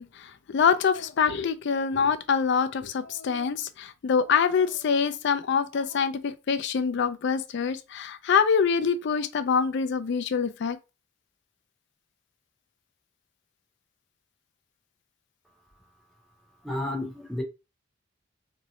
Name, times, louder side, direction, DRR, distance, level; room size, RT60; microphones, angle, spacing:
voice 1, 0.0-10.8, left 6 dB, 60° left, 0.4 m, -25 dB
voice 2, 16.6-17.4, left 1 dB, ahead, 0.6 m, -31 dB
3.0 x 2.8 x 2.7 m
head